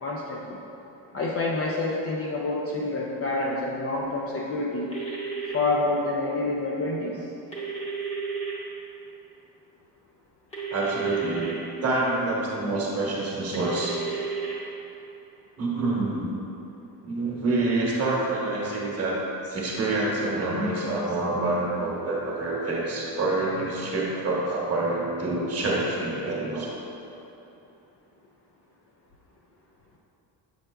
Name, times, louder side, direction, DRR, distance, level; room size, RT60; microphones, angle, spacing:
voice 1, 0.0-0.6 1.1-4.9 5.5-7.2, left 2 dB, 35° left, -3 dB, 0.4 m, -28 dB
sound 1, 4.9-5.5 7.5-8.5 10.5-11.5 13.5-14.6, right 5 dB, 15° left, 0.8 m, -32 dB
voice 2, 10.7-11.5 11.8-13.9 15.6-16.4 17.0-19.2 19.4-26.8, right 2 dB, 35° right, -5 dB, 1.1 m, -27 dB
7.6 x 5.5 x 2.3 m, 3.0 s
cardioid pair, 165°, 43 cm